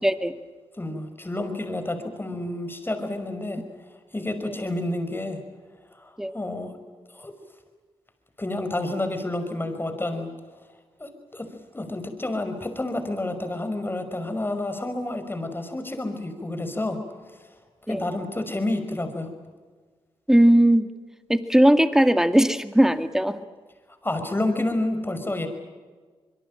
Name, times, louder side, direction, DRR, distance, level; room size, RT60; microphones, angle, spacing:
voice 1, 0.0-0.3 4.4-4.5 6.2-6.3 17.9-18.0 20.3-20.9 21.3-23.4, right 1 dB, 5° right, 10 dB, 2.1 m, -18 dB
voice 2, 0.8-3.6 4.1-5.4 5.9-6.7 7.1-7.3 8.4-10.3 11.0-11.5 11.7-17.0 17.9-19.3 24.0-25.5, left 2 dB, 20° left, 7 dB, 5.6 m, -29 dB
25.0 x 22.0 x 9.0 m, 1.4 s
cardioid pair, 65°, 10 cm